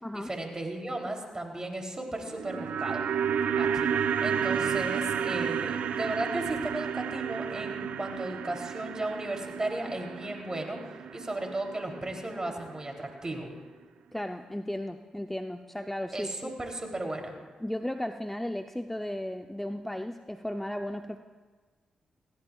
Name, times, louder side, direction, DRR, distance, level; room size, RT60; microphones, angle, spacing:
voice 1, 0.1-3.0 3.6-3.9 4.2-10.8 11.1-13.5 16.1-17.3, right 2 dB, 25° right, 1 dB, 3.3 m, -35 dB
sound 1, 2.2-12.5 12.8-12.9, right 7 dB, 80° right, 0.7 m, -31 dB
voice 2, 14.1-16.5 17.6-21.2, left 1 dB, 10° left, 7 dB, 0.6 m, -35 dB
21.0 x 16.5 x 2.4 m, 1.4 s
supercardioid pair, 45°, 3 cm